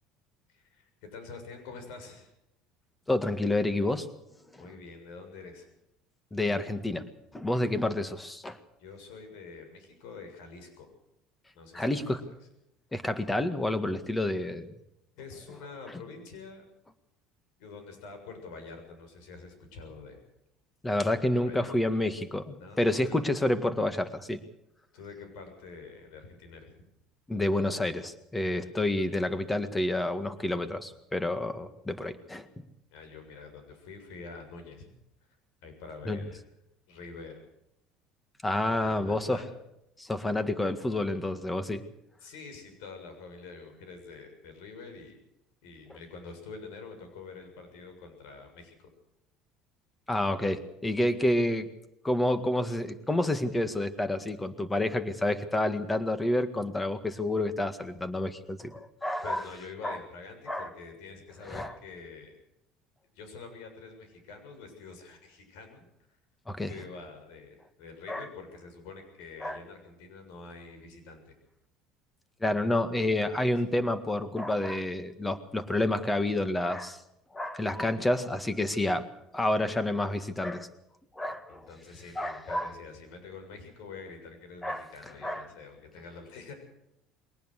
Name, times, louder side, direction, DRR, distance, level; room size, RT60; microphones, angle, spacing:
voice 1, 0.5-2.3 4.6-5.7 8.8-10.9 11.5-12.3 15.2-16.6 17.6-20.2 21.2-21.8 22.6-23.2 24.9-26.7 32.9-34.9 35.6-36.4 36.9-37.4 38.6-39.5 42.2-45.2 45.6-48.9 59.2-62.3 63.2-65.9 66.7-71.3 73.3-73.5 81.5-86.5, left 4 dB, 80° left, 6 dB, 7.2 m, -46 dB
voice 2, 3.1-4.1 4.5-4.6 6.3-7.1 7.3-8.6 11.7-12.2 12.9-14.8 20.8-24.4 27.3-32.5 36.1-36.2 38.4-39.4 40.0-41.8 50.1-51.7 52.0-59.4 59.8-60.0 60.5-60.7 61.5-61.8 66.5-66.7 68.1-68.3 69.4-69.6 72.4-77.0 77.3-79.1 79.3-80.7 81.1-81.7 82.2-82.7 84.6-84.9 85.2-85.4, left 1 dB, 10° left, 11 dB, 1.8 m, -29 dB
22.0 x 19.0 x 6.6 m, 0.83 s
cardioid pair, 130°, 0 cm